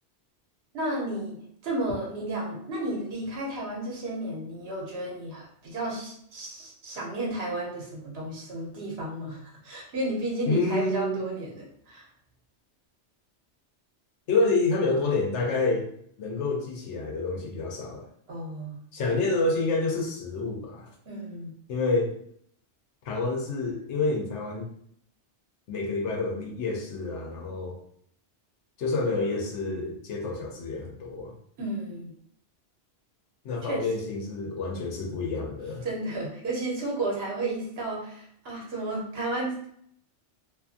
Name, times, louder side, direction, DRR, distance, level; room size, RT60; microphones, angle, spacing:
voice 1, 0.7-1.3 1.6-12.1 18.3-18.8 21.1-21.5 31.6-32.1 33.6-33.9 35.8-39.7, right 2 dB, 65° right, -3 dB, 1.1 m, -33 dB
voice 2, 10.5-11.3 14.3-15.8 16.2-18.1 18.9-20.9 21.7-22.1 23.0-24.7 25.7-27.8 28.8-31.3 33.4-35.9, left 3 dB, 85° left, 0 dB, 1.0 m, -28 dB
2.6 x 2.5 x 2.4 m, 0.68 s
omnidirectional pair, 1.2 m